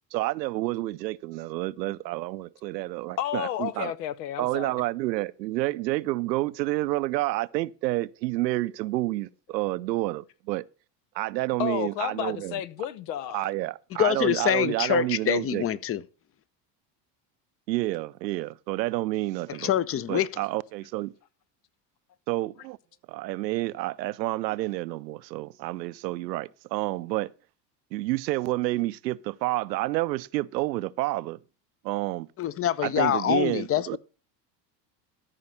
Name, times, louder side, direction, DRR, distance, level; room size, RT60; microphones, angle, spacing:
voice 1, 0.1-3.9 4.4-10.6 11.2-12.6 13.3-15.6 17.7-19.7 20.1-21.1 22.3-22.8 23.1-27.3 27.9-31.4 31.8-32.3 32.8-34.0, right 18 dB, 90° right, 0.6 m, -29 dB
voice 2, 3.2-4.8 11.6-13.5, left 11 dB, 75° left, 1.0 m, -32 dB
voice 3, 14.0-16.0 19.5-20.4 32.4-34.0, left 11 dB, 30° left, 0.6 m, -25 dB
13.5 x 5.1 x 5.6 m
hypercardioid pair, 90°, 49 cm